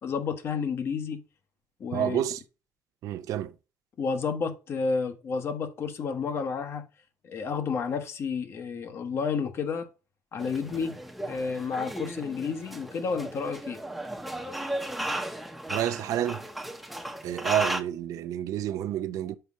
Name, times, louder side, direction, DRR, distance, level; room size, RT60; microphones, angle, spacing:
voice 1, 0.0-1.2 1.8-2.2 4.0-6.9 7.2-9.9 10.3-10.9 11.2-13.8, left 5 dB, 45° left, 1.0 m, -31 dB
voice 2, 1.9-2.4 3.0-3.5 15.7-16.4 17.2-19.4, right 11 dB, 65° right, 0.5 m, -29 dB
sound 1, 10.4-17.8, right 1 dB, ahead, 0.8 m, -35 dB
5.8 x 4.8 x 4.1 m
cardioid pair, 150°, 6 cm